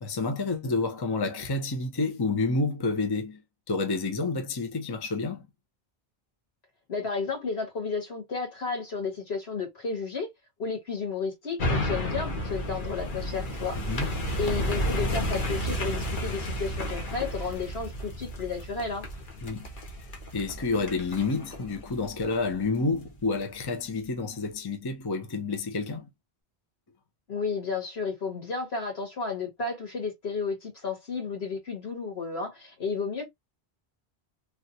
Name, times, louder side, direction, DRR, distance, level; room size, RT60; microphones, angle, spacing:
voice 1, 0.0-3.4 3.7-5.5 13.7-14.2 19.4-19.7 20.3-26.1, left 3 dB, 30° left, 0.6 m, -29 dB
voice 2, 6.9-10.3 10.6-13.8 14.4-19.1 27.3-33.2, left 4 dB, 75° left, 1.8 m, -32 dB
sound 1, 11.6-23.0 23.5-23.6, equal, 55° left, 1.0 m, -32 dB
3.3 x 2.3 x 2.6 m
omnidirectional pair, 1.1 m